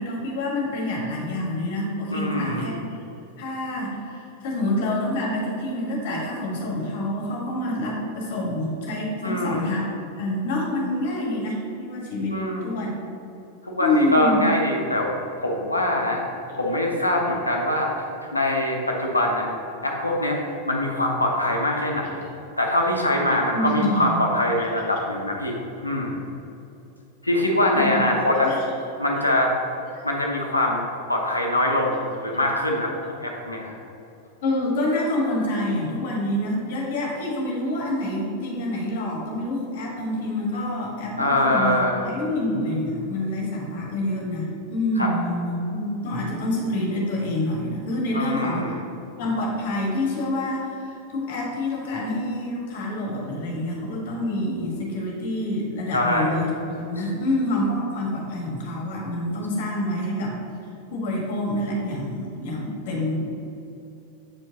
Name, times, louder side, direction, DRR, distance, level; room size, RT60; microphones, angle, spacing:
voice 1, 0.0-2.8 3.4-9.9 10.2-12.4 12.6-12.9 13.8-14.4 23.5-24.2 27.7-28.1 28.4-28.7 29.9-30.0 34.4-48.7 49.2-60.4 60.9-63.4, left 1 dB, 50° left, -2 dB, 1.4 m, -27 dB
voice 2, 2.1-2.8 9.2-9.7 12.3-12.6 13.6-15.1 15.4-16.2 16.6-17.9 18.3-19.5 19.8-22.2 22.6-26.2 27.2-28.5 29.0-29.5 30.0-33.7 41.2-42.1 45.0-45.1 48.1-48.8 55.9-56.4, left 1 dB, 85° left, 0 dB, 0.8 m, -23 dB
7.7 x 4.5 x 2.8 m, 2.9 s
figure-of-eight pair, 90°, 0 cm